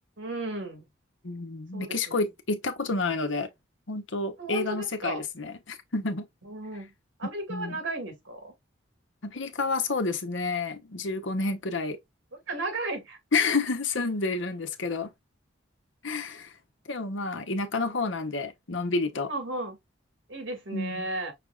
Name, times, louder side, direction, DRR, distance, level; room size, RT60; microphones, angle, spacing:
voice 1, 0.2-0.8 1.7-2.0 4.4-5.2 6.4-6.9 7.2-8.5 12.5-13.2 19.3-19.8 20.3-21.3, right 2 dB, 75° right, 2.1 m, -34 dB
voice 2, 1.2-3.5 3.9-6.3 7.5-7.8 9.2-12.0 13.3-15.1 16.0-16.5 16.9-19.3 20.7-21.1, left 3 dB, 80° left, 1.0 m, -29 dB
5.8 x 3.5 x 2.4 m
head